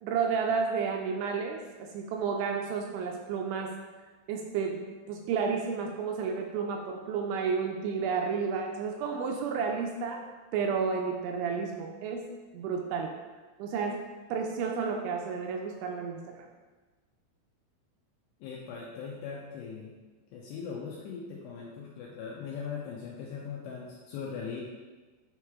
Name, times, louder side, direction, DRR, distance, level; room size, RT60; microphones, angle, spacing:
voice 1, 0.0-3.8 4.3-10.2 10.5-13.2 13.6-14.0 14.3-16.5, right 5 dB, 85° right, 2 dB, 2.7 m, -31 dB
voice 2, 18.4-19.9 20.3-24.6, left 6 dB, 85° left, -3 dB, 2.4 m, -40 dB
9.1 x 3.2 x 3.5 m, 1.3 s
omnidirectional pair, 5.5 m